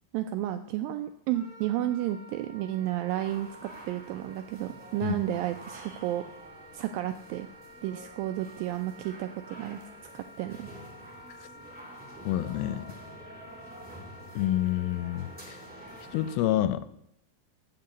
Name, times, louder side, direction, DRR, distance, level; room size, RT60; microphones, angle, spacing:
voice 1, 0.1-6.2 6.7-7.5 7.8-9.8 10.1-10.7, right 13 dB, 85° right, 9 dB, 2.0 m, -32 dB
Wind instrument woodwind instrument, 1.3-16.4, right 1 dB, 25° right, 1.7 m, -51 dB
sound 1, 3.1-16.4, right 1 dB, 5° right, 1.0 m, -49 dB
voice 2, 12.3-12.9 14.4-15.6 16.1-16.9, left 13 dB, 85° left, 14 dB, 2.3 m, -28 dB
7.6 x 6.7 x 8.2 m, 0.77 s
omnidirectional pair, 4.5 m